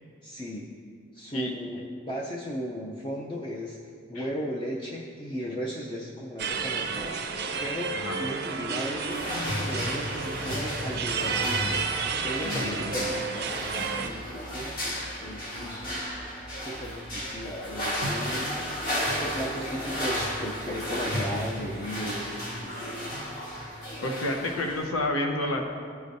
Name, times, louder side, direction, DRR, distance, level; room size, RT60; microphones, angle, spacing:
voice 1, 0.2-0.7 1.1-11.8 12.2-16.2 16.6-18.7 19.2-23.2, equal, 25° left, -3 dB, 0.5 m, -36 dB
sound 1, 6.4-14.1, right 5 dB, 50° right, 0.5 m, -31 dB
sound 2, 8.8-24.9, equal, 45° left, 1.4 m, -33 dB
voice 2, 12.4-13.1 24.0-25.6, left 1 dB, 90° left, 2 dB, 0.9 m, -30 dB
13.5 x 4.9 x 2.6 m, 2.2 s
head